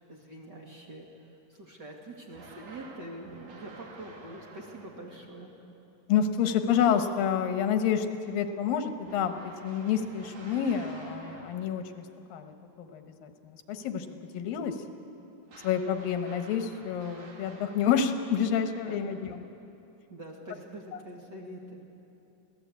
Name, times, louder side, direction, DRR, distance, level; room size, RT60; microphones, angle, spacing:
voice 1, 0.1-5.5 18.9-19.1 20.1-21.8, right 1 dB, 35° right, -1 dB, 2.0 m, -45 dB
sound 1, 2.3-5.3 9.0-11.9 15.5-18.6, right 3 dB, 55° right, 3.3 m, -51 dB
voice 2, 6.1-12.0 12.3-12.5 12.8-14.1 14.3-14.8 15.6-19.3, left 8 dB, 85° left, 7 dB, 3.0 m, -28 dB
25.5 x 17.0 x 8.4 m, 2.9 s
omnidirectional pair, 4.0 m